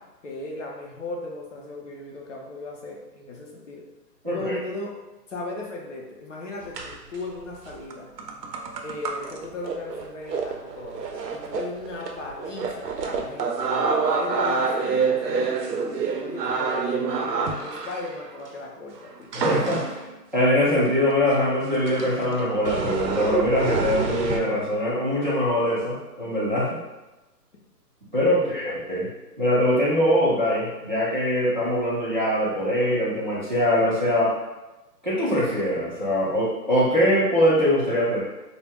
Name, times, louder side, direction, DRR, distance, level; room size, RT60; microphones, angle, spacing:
voice 1, 0.2-3.9 4.3-5.0 5.3-8.1 8.8-19.3 28.3-28.7, left 2 dB, 50° left, -2 dB, 0.6 m, -37 dB
voice 2, 4.2-4.6 19.3-20.0 20.3-26.8 28.1-29.1 29.4-34.3 35.0-38.2, equal, 30° right, -10 dB, 0.4 m, -22 dB
sound 1, 6.7-7.1 7.7-18.4 19.3-20.1 20.9-21.0 21.3-21.4 21.9-24.4, right 5 dB, 75° right, 0.6 m, -27 dB
2.2 x 2.1 x 3.4 m, 1.1 s
hypercardioid pair, 155°, 49 cm